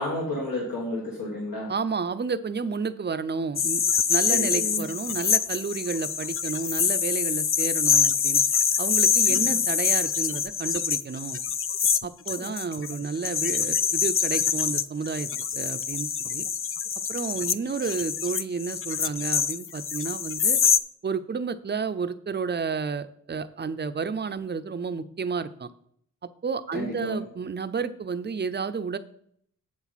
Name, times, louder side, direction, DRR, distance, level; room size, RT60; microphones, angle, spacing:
voice 1, 0.0-1.7 4.3-4.8 9.3-9.6 26.7-27.2, left 1 dB, 75° left, -3 dB, 1.8 m, -31 dB
voice 2, 1.7-3.8 4.1-8.4 8.8-11.4 12.0-15.3 15.6-16.4 17.1-20.6 21.0-25.7 26.4-29.0, right 5 dB, 30° right, 12 dB, 0.5 m, -31 dB
sound 1, 3.6-20.8, left 7 dB, 40° left, 0.4 m, -25 dB
7.9 x 7.2 x 4.1 m, 0.66 s
wide cardioid pair, 70°, 35 cm